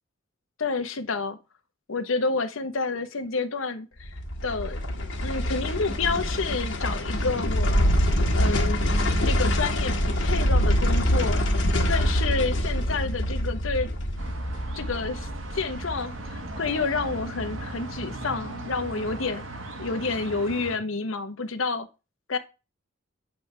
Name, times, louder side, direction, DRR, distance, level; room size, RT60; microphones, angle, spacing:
voice 1, 0.6-1.4 1.9-7.9 8.3-8.8 9.2-11.4 11.9-13.9 14.7-19.4 19.8-21.9 22.3-22.4, left 4 dB, 80° left, 1.0 m, -29 dB
sound 1, 4.0-17.2 17.5-17.6, equal, 65° left, 1.8 m, -25 dB
sound 2, 14.2-20.8, right 2 dB, 80° right, 1.3 m, -37 dB
8.4 x 3.5 x 6.6 m
head